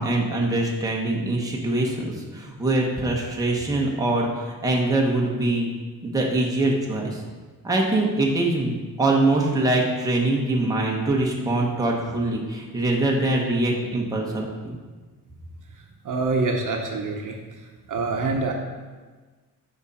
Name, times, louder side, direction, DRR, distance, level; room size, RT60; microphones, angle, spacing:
voice 1, 0.0-5.7 6.0-7.2 7.6-14.7, right 2 dB, 10° right, -2 dB, 1.0 m, -23 dB
voice 2, 16.0-17.4 17.9-18.5, right 3 dB, 55° right, 2 dB, 0.9 m, -25 dB
7.9 x 5.3 x 4.2 m, 1.4 s
wide cardioid pair, 145°, 38 cm